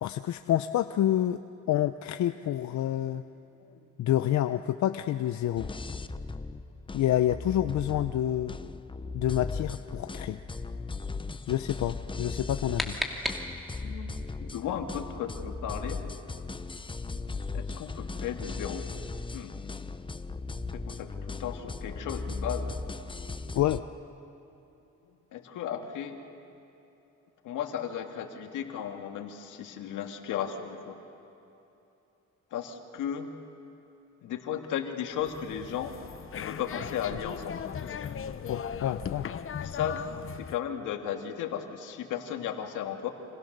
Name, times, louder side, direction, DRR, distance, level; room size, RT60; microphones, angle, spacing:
voice 1, 0.0-1.4 1.7-3.2 4.0-5.7 6.9-8.6 9.1-10.4 11.5-13.0 23.5-23.8 38.5-39.3, left 12 dB, 65° left, 10 dB, 0.7 m, -28 dB
sound 1, 5.6-23.8, left 3 dB, 15° left, 0.8 m, -38 dB
sound 2, 12.3-14.0, equal, ahead, 2.6 m, -35 dB
voice 2, 13.4-14.1 14.4-16.0 17.5-18.9 19.3-19.6 20.7-22.7 25.3-26.2 27.4-31.0 32.5-33.3 34.2-36.0 36.3-37.9 39.6-40.0 40.4-43.1, left 9 dB, 90° left, 5 dB, 2.1 m, -35 dB
sound 3, 35.2-40.6, left 8 dB, 45° left, 1.0 m, -38 dB
28.5 x 26.5 x 6.7 m, 2.9 s
cardioid pair, 90°, 30 cm